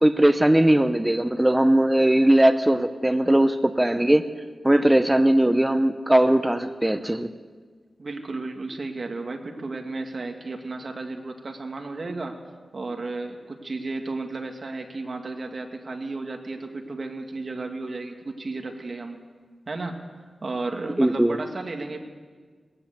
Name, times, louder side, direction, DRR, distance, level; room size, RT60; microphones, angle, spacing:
voice 1, 0.0-4.3 4.6-7.3 21.0-21.4, right 1 dB, 10° right, 10 dB, 0.8 m, -19 dB
voice 2, 8.0-12.4 12.7-19.2 19.7-20.1 20.4-22.0, right 3 dB, 50° right, 3 dB, 2.4 m, -33 dB
20.0 x 17.5 x 8.0 m, 1.5 s
wide cardioid pair, 95°, 0 cm